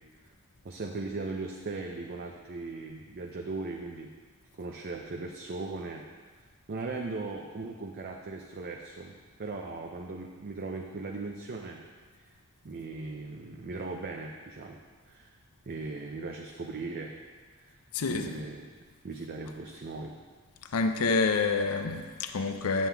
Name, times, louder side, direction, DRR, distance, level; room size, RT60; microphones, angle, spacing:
voice 1, 0.6-4.1 4.5-6.0 6.7-9.1 9.4-11.8 12.6-14.8 15.0-15.3 15.7-17.2 17.6-17.8 18.1-18.7 19.0-20.2, right 3 dB, 45° right, 2 dB, 0.5 m, -38 dB
voice 2, 17.9-18.4 20.7-22.9, left 4 dB, 70° left, 6 dB, 0.6 m, -28 dB
9.2 x 7.4 x 3.5 m, 1.5 s
head